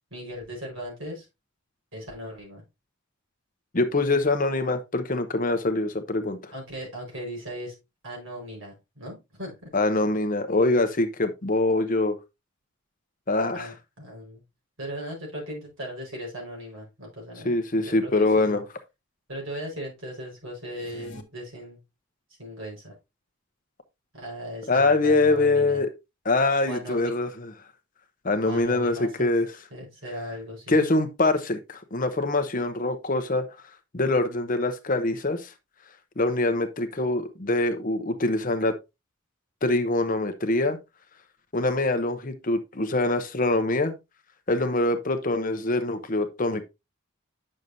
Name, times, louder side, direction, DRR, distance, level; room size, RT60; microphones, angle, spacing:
voice 1, 0.1-1.3 1.9-2.6 6.5-7.7 8.0-9.7 13.5-14.4 14.8-18.6 19.3-21.8 22.4-22.9 24.1-25.8 26.6-27.1 28.4-29.3 29.7-30.8, equal, 60° right, 4.7 m, -38 dB
voice 2, 3.7-6.5 9.7-12.2 13.3-13.7 17.4-18.6 24.7-25.9 26.2-27.5 28.2-29.5 30.7-33.5 33.9-35.5 36.2-38.8 39.6-40.8 41.5-43.9 44.5-46.6, left 2 dB, 40° left, 0.8 m, -24 dB
sound 1, 20.6-21.2, equal, 55° left, 1.2 m, -45 dB
9.1 x 6.5 x 2.6 m
head